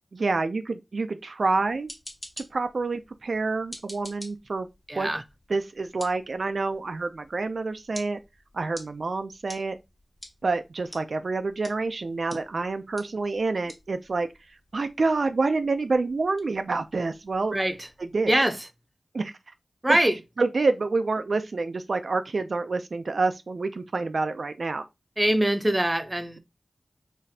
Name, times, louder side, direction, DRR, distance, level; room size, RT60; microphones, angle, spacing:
voice 1, 0.1-1.9 2.4-4.7 5.0-5.1 5.5-8.2 8.5-9.8 10.4-14.3 14.7-17.5 18.0-18.3 19.1-19.3 19.9-20.0 20.4-24.8, right 3 dB, 65° right, 0.3 m, -27 dB
sound 1, 1.6-18.4, left 1 dB, 25° left, 1.3 m, -49 dB
voice 2, 4.9-5.2 17.5-17.9 18.3-18.6 19.8-20.2 25.2-26.4, right 1 dB, 20° right, 0.6 m, -23 dB
4.0 x 3.1 x 2.7 m
wide cardioid pair, 65°, 0 cm